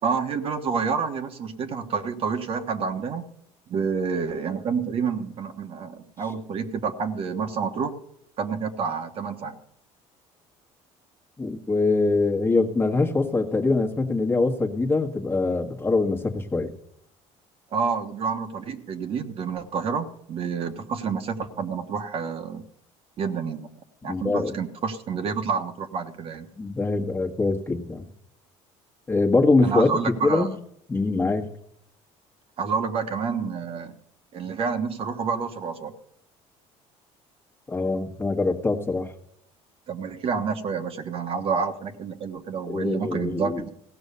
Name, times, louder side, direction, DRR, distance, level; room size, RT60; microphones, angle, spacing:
voice 1, 0.0-3.2 3.7-7.9 8.4-9.6 17.7-22.6 23.2-23.7 24.0-26.5 29.6-30.6 32.6-33.9 34.3-35.9 39.9-43.7, right 5 dB, 45° right, 7 dB, 1.4 m, -28 dB
voice 2, 11.4-16.7 24.0-24.6 26.6-28.1 29.1-30.5 30.9-31.5 37.7-39.1 42.7-43.7, left 3 dB, 20° left, 3 dB, 1.5 m, -23 dB
16.5 x 6.2 x 6.8 m, 0.74 s
cardioid pair, 110°, 13 cm